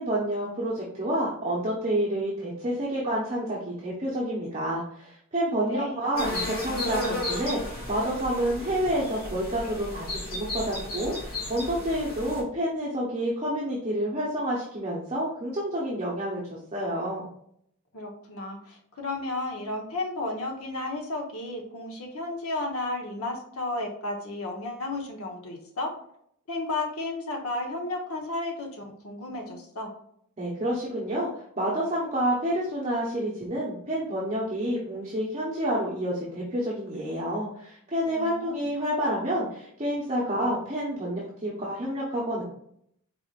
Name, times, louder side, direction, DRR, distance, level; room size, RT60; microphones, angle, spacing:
voice 1, 0.0-17.3 30.4-31.3 31.6-42.4, right 1 dB, 30° right, -5 dB, 0.8 m, -29 dB
voice 2, 5.7-6.1 17.9-25.9 26.5-29.9 38.0-38.6, left 2 dB, 75° left, 1 dB, 1.0 m, -33 dB
sound 1, 6.2-12.4, left 1 dB, 40° left, 1.7 m, -34 dB
4.8 x 3.4 x 2.4 m, 0.68 s
head